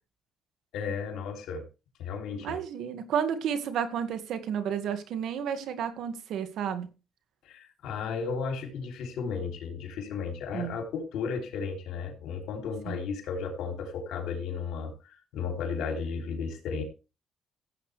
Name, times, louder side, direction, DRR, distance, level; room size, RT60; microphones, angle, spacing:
voice 1, 0.7-1.6 2.0-2.6 7.4-16.8, left 5 dB, 85° left, 3.3 m, -34 dB
voice 2, 2.4-6.9 10.5-10.8 12.9-13.0, right 8 dB, 80° right, 2.1 m, -31 dB
16.0 x 8.8 x 3.4 m
cardioid pair, 90°, 0 cm